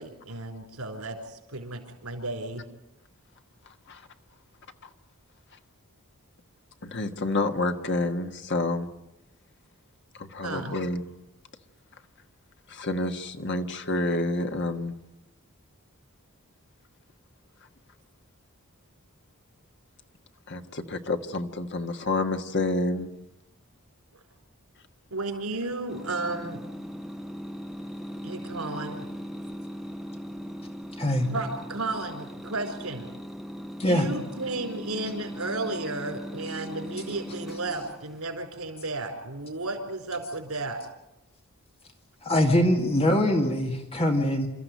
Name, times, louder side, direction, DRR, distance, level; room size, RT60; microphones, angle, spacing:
voice 1, 0.0-2.6 10.4-10.7 25.1-26.6 28.2-29.1 31.3-33.1 33.8-40.8, right 2 dB, 85° right, 5 dB, 4.5 m, -33 dB
voice 2, 6.8-8.9 10.1-11.0 12.7-14.9 20.5-23.1, left 2 dB, 55° left, 6 dB, 1.5 m, -29 dB
sound 1, 25.9-38.2, equal, ahead, 0.9 m, -39 dB
voice 3, 42.2-44.5, left 1 dB, 30° left, 3 dB, 2.2 m, -23 dB
28.5 x 14.0 x 9.3 m, 0.92 s
head